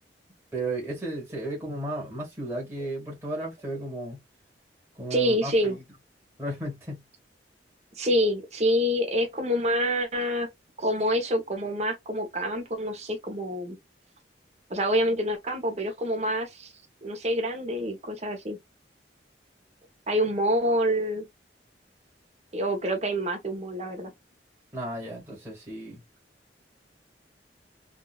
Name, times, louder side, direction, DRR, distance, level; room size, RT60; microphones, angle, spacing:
voice 1, 0.5-4.2 4.9-5.8 6.4-7.0 24.7-26.0, right 1 dB, 15° right, 1.5 m, -34 dB
voice 2, 5.1-5.8 8.0-10.5 10.8-13.8 14.7-16.7 17.0-18.6 20.1-21.3 22.5-24.1, equal, 40° right, 1.1 m, -27 dB
3.7 x 2.5 x 2.3 m
head